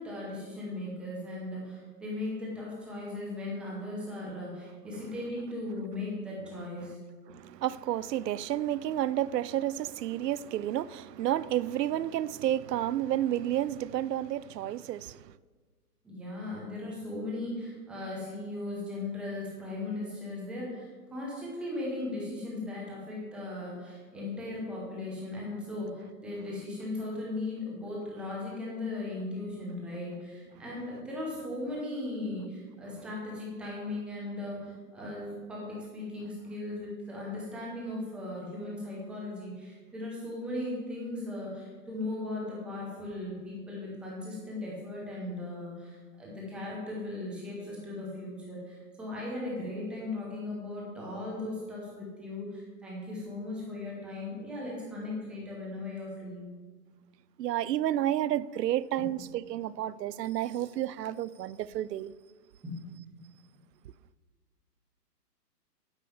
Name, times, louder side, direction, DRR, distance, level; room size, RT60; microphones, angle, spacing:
voice 1, 0.0-7.0 16.0-56.5 62.6-62.9, left 2 dB, ahead, 0.7 m, -37 dB
voice 2, 7.3-15.4 30.6-30.7 57.4-62.1, right 12 dB, 80° right, 0.5 m, -31 dB
9.1 x 5.4 x 7.0 m
hypercardioid pair, 160°, 48 cm